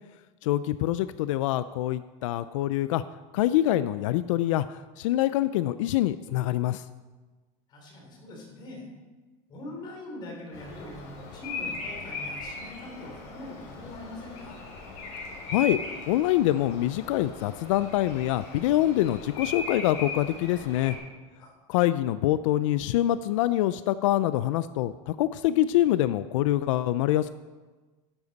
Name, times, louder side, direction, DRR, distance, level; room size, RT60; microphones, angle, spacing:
voice 1, 0.4-3.0 3.3-6.8 15.5-15.8 16.1-21.0 21.7-27.3, left 14 dB, 90° left, 14 dB, 0.4 m, -25 dB
voice 2, 7.7-8.9 9.5-14.6 21.4-21.5, left 1 dB, 30° left, 0 dB, 3.0 m, -42 dB
Bird vocalization bird call bird song, 10.5-21.0, left 3 dB, 45° left, 3.4 m, -39 dB
12.0 x 10.0 x 4.1 m, 1.3 s
supercardioid pair, 165°, 16 cm